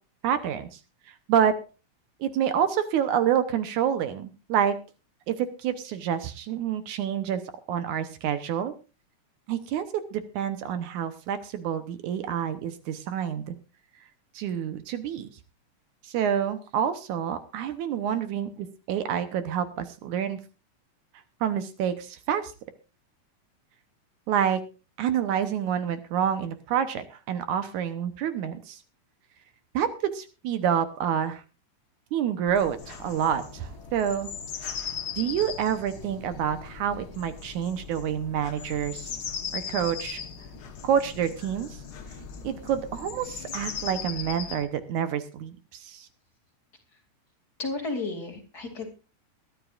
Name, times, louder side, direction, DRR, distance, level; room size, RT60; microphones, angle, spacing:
voice 1, 0.2-0.8 1.3-1.6 2.2-4.8 5.3-7.4 7.7-8.7 9.5-9.9 10.1-13.6 14.4-15.3 16.0-20.4 21.4-22.5 24.3-24.6 25.0-28.8 29.7-31.4 32.1-34.3 35.2-39.2 39.5-40.2 40.8-41.8 42.4-45.5 45.8-46.1, right 9 dB, 75° right, 10 dB, 2.3 m, -28 dB
sound 1, 32.5-44.6, left 7 dB, 60° left, 1.0 m, -38 dB
voice 2, 47.6-48.9, left 3 dB, 30° left, 1 dB, 2.9 m, -32 dB
22.0 x 12.0 x 2.5 m, 0.32 s
omnidirectional pair, 3.6 m